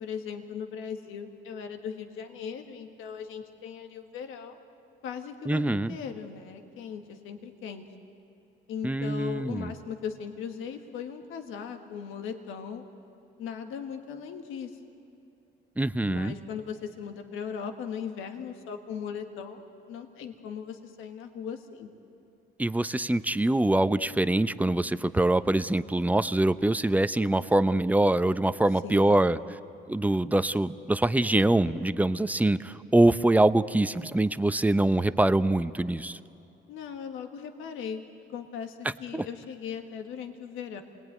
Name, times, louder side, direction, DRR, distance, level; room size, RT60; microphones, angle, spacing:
voice 1, 0.0-4.6 5.0-7.8 8.7-12.8 13.4-14.7 16.1-19.6 19.9-21.9 28.8-29.3 36.7-38.0 38.3-40.8, left 7 dB, 90° left, 6 dB, 1.6 m, -38 dB
voice 2, 5.5-6.0 8.8-9.7 15.8-16.3 22.6-29.4 29.9-36.2 39.1-39.3, right 1 dB, 10° right, 13 dB, 0.7 m, -24 dB
27.5 x 19.5 x 9.4 m, 2.8 s
cardioid pair, 90°, 20 cm